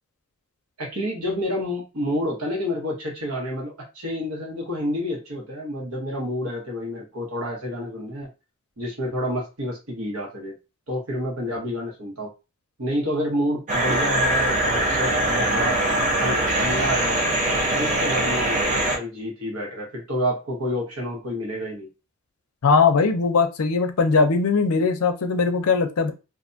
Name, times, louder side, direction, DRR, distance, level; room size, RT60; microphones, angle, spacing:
voice 1, 0.8-8.3 8.8-10.5 10.9-12.3 12.8-15.8 16.2-17.2 17.8-18.6 18.9-21.9, equal, 75° right, -1 dB, 1.1 m, -29 dB
sound 1, 13.7-19.0, right 1 dB, 35° right, 0.7 m, -22 dB
voice 2, 22.6-26.1, left 4 dB, 85° left, 6 dB, 0.5 m, -20 dB
2.6 x 2.2 x 2.6 m, 0.28 s
head